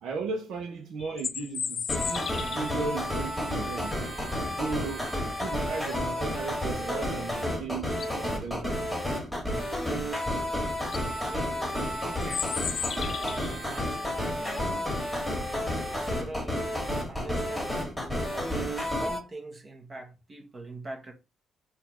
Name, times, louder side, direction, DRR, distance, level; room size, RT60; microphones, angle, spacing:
voice 1, 0.0-4.0 4.5-5.1 5.4-8.9, right 4 dB, 75° right, 0.9 m, -36 dB
sound 1, 1.0-2.8 7.3-7.4 7.8-8.3 10.3-10.4 10.8-11.0 12.2-13.6, left 7 dB, 55° left, 0.4 m, -34 dB
sound 2, 1.9-19.2, left 1 dB, ahead, 2.0 m, -31 dB
voice 2, 11.2-12.5 13.1-14.9 15.9-16.6 17.1-18.0 18.3-21.1, right 2 dB, 35° right, 1.4 m, -43 dB
4.3 x 2.7 x 4.3 m
cardioid pair, 90°, 0 cm